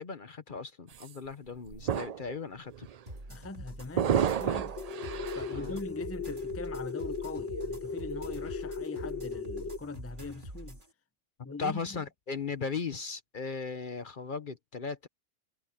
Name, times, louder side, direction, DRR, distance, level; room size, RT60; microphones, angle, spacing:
voice 1, 0.0-2.9 5.5-5.8 11.6-15.1, left 5 dB, 45° left, 1.1 m, -37 dB
sound 1, 0.9-1.1 1.7-2.3 2.7-3.0 3.9-5.6, right 8 dB, 65° right, 0.3 m, -31 dB
sound 2, 3.1-10.9, right 1 dB, 40° right, 3.8 m, -45 dB
voice 2, 3.3-4.8 5.3-10.8 11.4-12.0, left 3 dB, 15° left, 0.7 m, -42 dB
sound 3, 4.8-9.8, left 4 dB, 70° left, 1.9 m, -37 dB
omnidirectional pair, 1.3 m